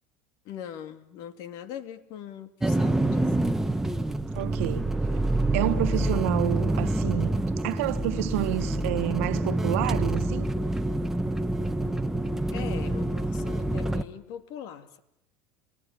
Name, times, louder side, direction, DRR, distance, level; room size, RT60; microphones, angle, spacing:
voice 1, 0.4-3.5 12.5-15.0, left 9 dB, 60° left, 2.6 m, -41 dB
sound 1, 2.6-14.0, right 1 dB, 5° right, 1.3 m, -27 dB
voice 2, 4.3-4.9 5.5-10.5, right 18 dB, 80° right, 1.3 m, -29 dB
30.0 x 18.5 x 9.8 m
supercardioid pair, 105°, 8 cm